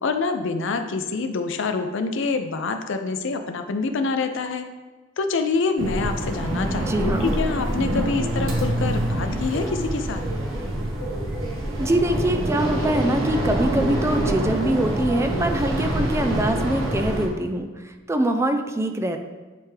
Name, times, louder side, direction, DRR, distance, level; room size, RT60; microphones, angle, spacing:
voice 1, 0.0-4.7 5.2-10.2, left 4 dB, 65° left, 7 dB, 0.5 m, -26 dB
sound 1, 5.8-17.3, right 1 dB, 85° right, 1.3 m, -25 dB
voice 2, 6.8-7.3 11.8-19.2, right 1 dB, 15° right, 6 dB, 0.4 m, -24 dB
10.0 x 3.5 x 3.3 m, 1.3 s
head